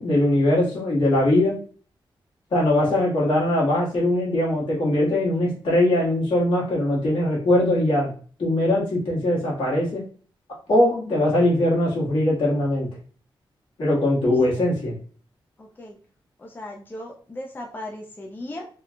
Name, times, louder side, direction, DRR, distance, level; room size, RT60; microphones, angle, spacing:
voice 1, 0.0-1.6 2.5-8.1 8.4-10.0 10.7-12.9 13.8-14.9, left 1 dB, 80° left, -5 dB, 1.9 m, -21 dB
voice 2, 15.6-16.0 16.4-18.7, left 1 dB, 20° left, 0 dB, 0.5 m, -37 dB
3.6 x 3.3 x 2.4 m, 0.42 s
wide cardioid pair, 145°, 9 cm